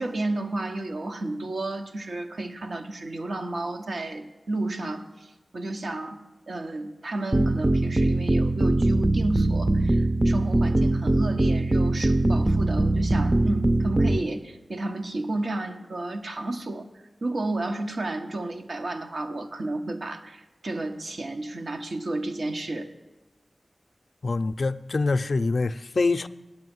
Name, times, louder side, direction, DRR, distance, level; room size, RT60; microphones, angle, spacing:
voice 1, 0.0-16.9 17.2-22.9, right 2 dB, 85° right, 1.0 m, -32 dB
sound 1, 7.3-14.2, right 1 dB, 30° right, 0.5 m, -22 dB
voice 2, 24.2-26.3, left 3 dB, 75° left, 0.4 m, -25 dB
9.0 x 8.5 x 9.4 m
cardioid pair, 45°, 0 cm